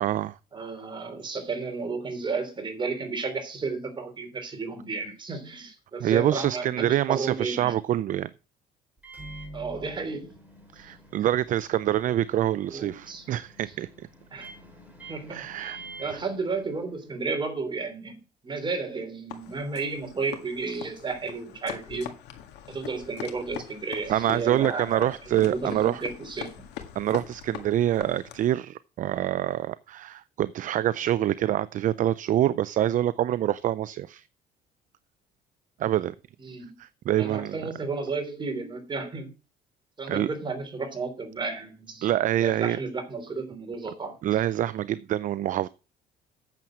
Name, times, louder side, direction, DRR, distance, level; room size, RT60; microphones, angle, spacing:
voice 1, 0.0-0.4 6.0-8.3 10.7-14.1 15.3-15.8 16.1-16.2 24.1-26.0 27.0-34.2 35.8-36.1 36.8-37.7 40.1-40.3 42.0-42.8 44.2-45.7, right 12 dB, 50° right, 0.4 m, -26 dB
voice 2, 0.5-7.8 9.5-10.4 12.7-13.3 14.3-14.5 15.1-18.2 18.4-22.1 22.7-26.6 36.4-36.8 37.2-39.3 40.0-42.1 42.4-44.2, right 4 dB, 30° right, 3.3 m, -33 dB
Microwave oven, 9.0-17.1, right 2 dB, 10° right, 4.1 m, -47 dB
sound 1, 19.3-28.6, left 10 dB, 85° left, 1.8 m, -42 dB
9.0 x 7.2 x 6.1 m
cardioid pair, 110°, 17 cm